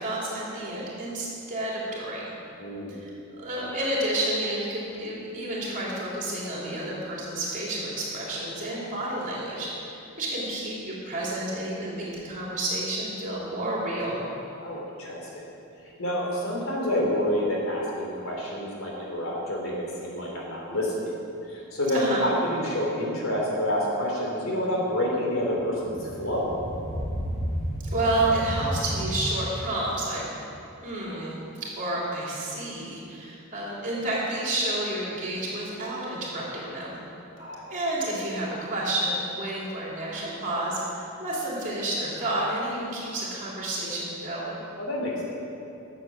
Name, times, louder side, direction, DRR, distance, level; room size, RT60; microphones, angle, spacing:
voice 1, 0.0-2.2 2.9-3.1 3.4-14.2 21.9-22.3 27.9-30.2 30.8-37.0 37.7-44.6, right 1 dB, 40° right, -5 dB, 3.3 m, -30 dB
voice 2, 2.6-2.9 14.6-15.3 16.0-19.7 20.0-21.1 21.5-26.5 37.3-37.8 44.8-45.3, left 1 dB, 80° left, -3 dB, 3.1 m, -28 dB
sound 1, 25.5-29.1, equal, 35° left, 1.8 m, -32 dB
11.0 x 7.5 x 7.2 m, 2.7 s
head